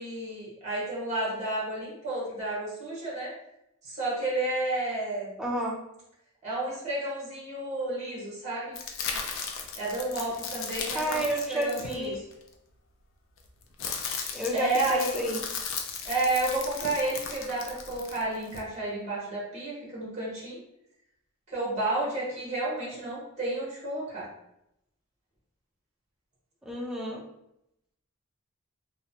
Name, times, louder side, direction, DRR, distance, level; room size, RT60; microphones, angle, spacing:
voice 1, 0.0-3.3 3.8-5.4 6.4-8.7 9.8-11.2 11.5-12.2 14.5-15.2 16.0-20.6 21.5-24.3, right 2 dB, 30° right, -7 dB, 0.9 m, -31 dB
voice 2, 5.4-5.7 10.9-12.2 14.3-15.4 26.7-27.2, equal, 5° right, -2 dB, 0.3 m, -30 dB
sound 1, 8.7-12.5 13.4-18.6, left 6 dB, 65° left, 0.4 m, -36 dB
2.9 x 2.1 x 2.7 m, 0.82 s
head